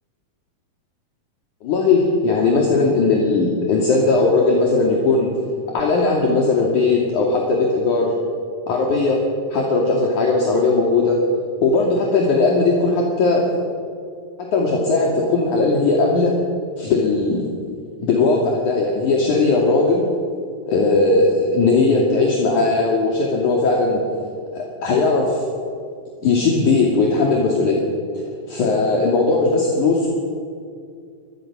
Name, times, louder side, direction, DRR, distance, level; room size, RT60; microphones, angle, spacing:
voice 1, 1.6-5.3 5.7-8.1 8.7-9.2 9.5-11.2 11.6-13.5 14.4-16.4 16.8-17.5 18.0-20.0 20.7-24.0 24.5-25.4 26.2-27.8 28.5-30.1, left 3 dB, 55° left, -1 dB, 3.8 m, -18 dB
25.5 x 22.0 x 6.2 m, 2.3 s
omnidirectional pair, 4.2 m